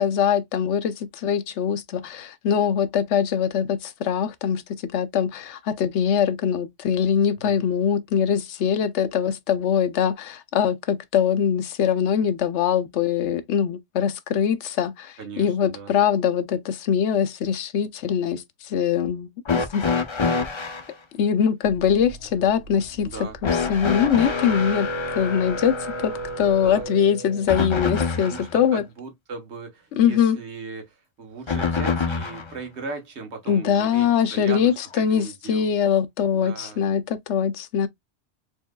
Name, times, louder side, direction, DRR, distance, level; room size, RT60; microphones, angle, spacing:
voice 1, 0.0-19.8 21.2-23.1 23.4-24.9 25.1-28.8 30.0-30.4 33.5-37.9, left 8 dB, 85° left, 1.0 m, -23 dB
voice 2, 15.2-16.0 23.0-23.4 26.6-26.9 28.2-35.7 36.3-36.8, right 4 dB, 75° right, 1.5 m, -38 dB
sound 1, 19.4-20.9 23.4-28.5 31.5-32.5 33.8-33.9 34.9-35.0, left 4 dB, 35° left, 0.5 m, -26 dB
sound 2, 21.6-26.9, right 2 dB, 35° right, 1.6 m, -44 dB
4.4 x 3.6 x 2.2 m
omnidirectional pair, 1.2 m